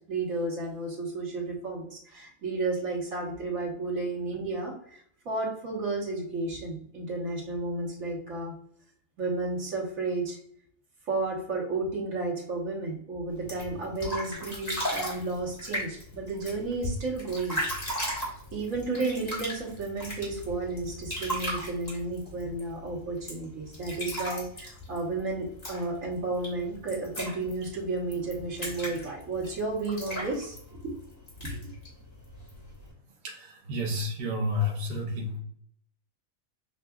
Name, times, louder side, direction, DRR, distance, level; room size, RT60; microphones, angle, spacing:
voice 1, 0.1-8.5 9.2-10.4 11.1-17.6 18.5-30.6 30.8-30.9 31.4-31.6, right 3 dB, 70° right, -3 dB, 1.7 m, -32 dB
sound 1, 13.3-32.9, equal, 30° left, 1.7 m, -37 dB
voice 2, 33.2-35.4, left 2 dB, 50° right, -1 dB, 1.0 m, -30 dB
6.7 x 2.4 x 2.3 m, 0.63 s
omnidirectional pair, 1.4 m